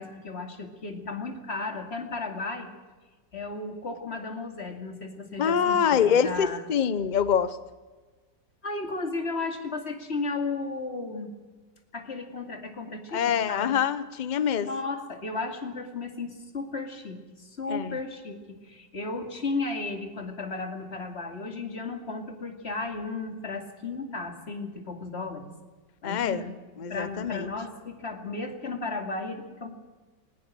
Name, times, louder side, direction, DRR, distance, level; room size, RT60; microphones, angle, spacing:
voice 1, 0.0-2.7 3.3-6.6 8.6-11.3 11.9-13.7 14.6-25.5 26.0-26.5 26.9-29.7, left 3 dB, 35° left, 5 dB, 2.7 m, -34 dB
voice 2, 5.4-7.6 13.1-14.7 17.7-18.0 26.0-26.4 26.8-27.5, left 7 dB, 85° left, 15 dB, 0.4 m, -25 dB
20.0 x 19.0 x 7.6 m, 1.3 s
omnidirectional pair, 2.0 m